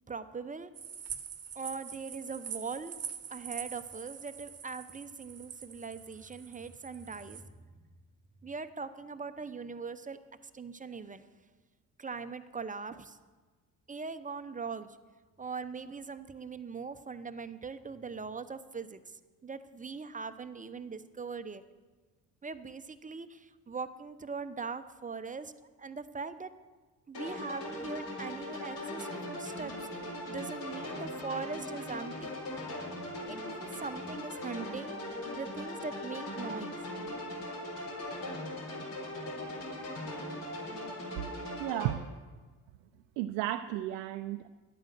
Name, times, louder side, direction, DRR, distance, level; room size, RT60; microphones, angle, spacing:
voice 1, 0.1-0.7 1.5-3.0 3.3-7.4 8.4-10.2 10.5-11.2 12.0-13.2 13.9-14.9 15.4-19.0 19.4-21.6 22.4-25.5 25.8-26.5 27.1-29.9 30.3-32.4 33.2-34.9 35.4-36.8, right 4 dB, 20° right, 12 dB, 0.8 m, -41 dB
sound 1, 0.7-7.4, right 7 dB, 35° right, 1.1 m, -44 dB
sound 2, 27.1-41.9, left 1 dB, 65° left, 4.5 m, -40 dB
voice 2, 41.6-42.1 43.2-44.5, right 14 dB, 80° right, 8 dB, 0.6 m, -33 dB
11.5 x 8.9 x 6.7 m, 1.3 s
hypercardioid pair, 55°, 43 cm